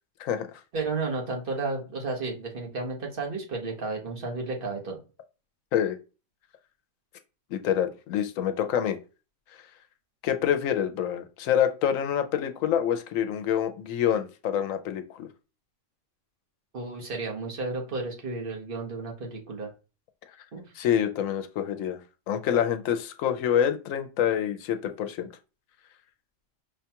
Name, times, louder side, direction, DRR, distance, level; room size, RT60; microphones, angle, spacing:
voice 1, 0.2-0.6 5.7-6.0 7.5-9.0 10.2-15.3 20.7-22.0 22.3-25.3, left 9 dB, 85° left, 8 dB, 1.0 m, -26 dB
voice 2, 0.7-5.0 16.7-19.7 20.5-20.6, right 3 dB, 45° right, 1 dB, 1.2 m, -32 dB
5.4 x 2.3 x 2.8 m, 0.32 s
omnidirectional pair, 1.3 m